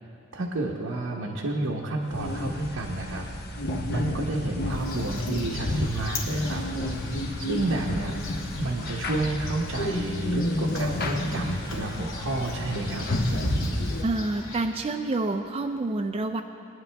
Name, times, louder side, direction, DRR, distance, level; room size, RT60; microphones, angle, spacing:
voice 1, 0.3-3.3 3.9-6.6 7.4-8.2 8.6-13.1, right 2 dB, 85° right, -2 dB, 1.1 m, -30 dB
sound 1, 2.1-14.0, left 1 dB, 50° left, 1.0 m, -31 dB
sound 2, 4.7-14.6, left 1 dB, 85° left, 2.6 m, -36 dB
voice 2, 14.0-16.4, right 2 dB, 30° right, 5 dB, 0.4 m, -28 dB
21.5 x 10.5 x 3.4 m, 2.7 s
head